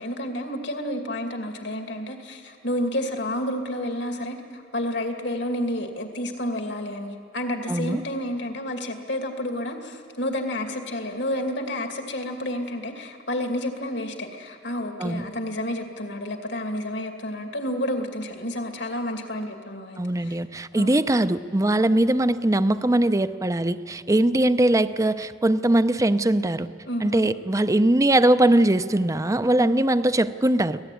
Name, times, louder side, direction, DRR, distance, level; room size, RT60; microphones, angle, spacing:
voice 1, 0.0-20.4 20.7-20.9 26.9-27.3 29.6-29.8, left 1 dB, 70° left, 4 dB, 2.5 m, -30 dB
voice 2, 7.7-8.0 15.0-15.3 20.0-26.7 27.0-30.8, right 1 dB, 20° right, 12 dB, 0.6 m, -21 dB
25.0 x 17.0 x 9.3 m, 2.6 s
head